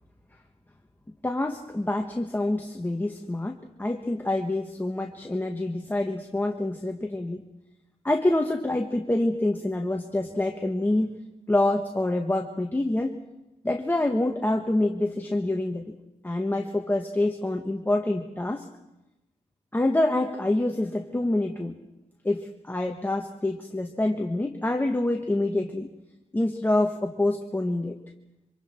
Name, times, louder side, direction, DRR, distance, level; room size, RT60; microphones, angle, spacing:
voice 1, 1.2-7.5 8.0-13.2 13.6-15.9 16.2-18.7 19.7-21.8 22.2-25.9 26.3-27.9, left 1 dB, 15° left, 3 dB, 1.3 m, -26 dB
27.0 x 25.5 x 4.4 m, 0.97 s
wide cardioid pair, 115°, 13 cm